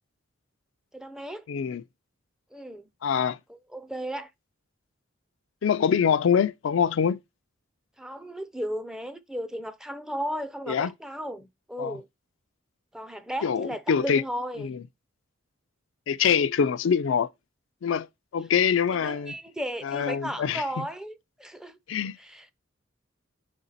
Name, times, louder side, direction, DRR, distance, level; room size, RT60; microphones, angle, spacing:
voice 1, 0.9-1.4 2.5-2.9 3.5-4.3 8.0-12.1 12.9-14.8 18.9-21.8 22.2-22.5, equal, 5° right, 0.4 m, -35 dB
voice 2, 1.5-1.8 3.0-3.4 5.6-7.2 10.7-10.9 11.8-12.0 13.4-14.2 14.6-14.8 16.1-17.3 17.8-18.1 18.3-19.3 19.8-20.9 21.9-22.2, left 7 dB, 65° left, 0.4 m, -24 dB
5.7 x 4.2 x 3.9 m
head